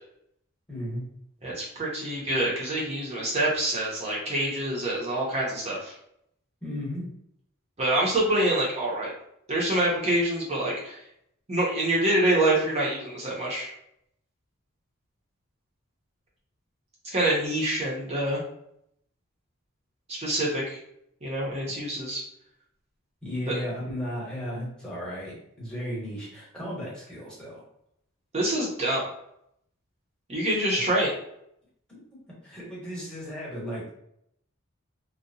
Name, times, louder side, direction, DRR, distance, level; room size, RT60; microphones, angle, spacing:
voice 1, 0.7-1.0 6.6-7.0 21.6-21.7 23.2-27.6 31.9-33.9, equal, 5° left, -7 dB, 0.9 m, -35 dB
voice 2, 1.4-5.9 7.8-9.1 9.5-11.0 11.5-13.7 17.1-18.4 20.1-20.8 21.2-22.2 23.5-23.6 28.3-29.0 30.3-31.1, right 1 dB, 30° right, -4 dB, 0.6 m, -26 dB
2.7 x 2.1 x 2.6 m, 0.74 s
head